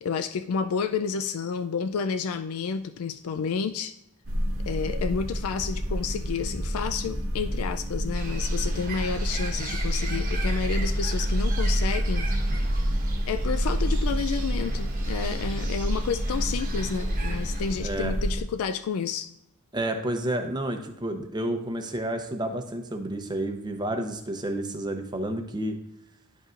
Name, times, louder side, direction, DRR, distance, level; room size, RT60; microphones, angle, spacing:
voice 1, 0.0-3.9 4.7-12.3 13.3-19.3, left 6 dB, 80° left, 10 dB, 0.4 m, -30 dB
sound 1, 4.3-18.4, equal, 75° right, 0.8 m, -28 dB
Bird, 8.1-17.7, right 4 dB, 40° right, 1.1 m, -40 dB
voice 2, 17.8-18.1 19.7-25.8, right 1 dB, 20° right, 5 dB, 0.7 m, -30 dB
10.5 x 5.3 x 2.5 m, 0.86 s
head